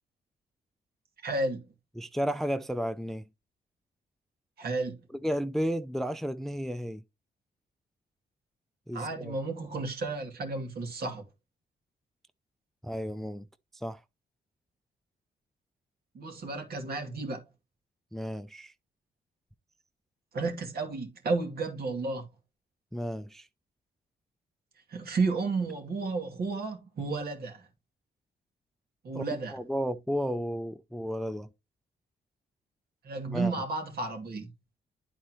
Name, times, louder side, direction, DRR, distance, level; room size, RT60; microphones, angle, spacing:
voice 1, 1.2-1.6 4.6-5.0 8.9-11.2 16.1-17.4 20.3-22.2 24.9-27.7 29.0-29.6 33.0-34.5, right 3 dB, 65° right, 2.4 m, -32 dB
voice 2, 2.0-3.2 5.1-7.0 8.9-9.3 12.8-13.4 13.7-14.0 18.1-18.7 22.9-23.5 29.1-31.5 33.3-33.5, equal, ahead, 0.3 m, -33 dB
11.0 x 4.3 x 2.9 m
wide cardioid pair, 135°, 17 cm